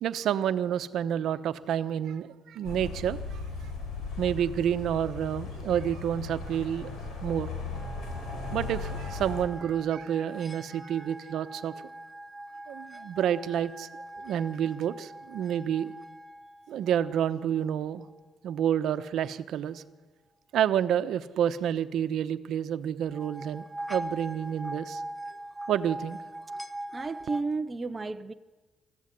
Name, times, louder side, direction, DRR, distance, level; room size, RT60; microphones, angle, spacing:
voice 1, 0.0-3.4 4.2-6.9 7.2-7.5 8.5-11.8 12.7-13.9 14.2-15.9 16.7-18.0 18.4-19.8 20.5-25.0 25.7-26.2, right 9 dB, 65° right, 0.9 m, -29 dB
sound 1, 2.6-9.4, left 4 dB, 80° left, 5.0 m, -37 dB
sound 2, 7.7-17.6 23.0-27.4, right 1 dB, 5° left, 1.1 m, -42 dB
voice 2, 26.9-28.3, right 3 dB, 20° right, 0.6 m, -32 dB
23.0 x 15.0 x 10.0 m
cardioid pair, 155°, 0 cm